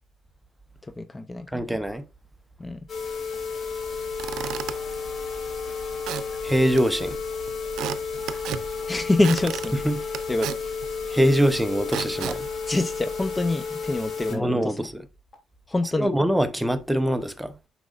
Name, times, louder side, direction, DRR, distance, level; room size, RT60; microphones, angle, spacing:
voice 1, 0.8-1.6 2.6-2.8 8.9-9.7 10.3-10.7 12.7-14.7 15.7-16.1, left 2 dB, 20° left, 0.6 m, -25 dB
voice 2, 1.5-2.0 6.4-7.2 9.7-10.0 11.1-12.5 14.3-15.0 16.0-17.5, equal, 5° right, 0.8 m, -23 dB
sound 1, 2.9-14.4 14.8-14.9 15.3-15.4 15.8-15.9, left 5 dB, 45° left, 3.0 m, -32 dB
Squeak / Wood, 3.9-13.5, right 10 dB, 80° right, 0.6 m, -37 dB
9.3 x 6.1 x 2.5 m
cardioid pair, 90°, 0 cm